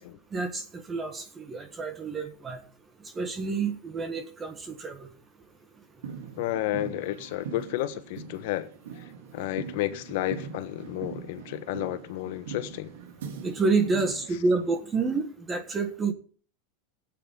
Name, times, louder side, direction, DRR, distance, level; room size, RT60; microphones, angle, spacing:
voice 1, 0.3-2.6 3.0-5.1 13.4-16.1, right 4 dB, 20° right, 1.6 m, -29 dB
sound 1, 6.0-14.3, right 6 dB, 90° right, 3.2 m, -42 dB
voice 2, 6.4-8.7 9.0-12.9, left 14 dB, 65° left, 1.4 m, -32 dB
17.0 x 8.9 x 3.9 m
supercardioid pair, 145°, 0 cm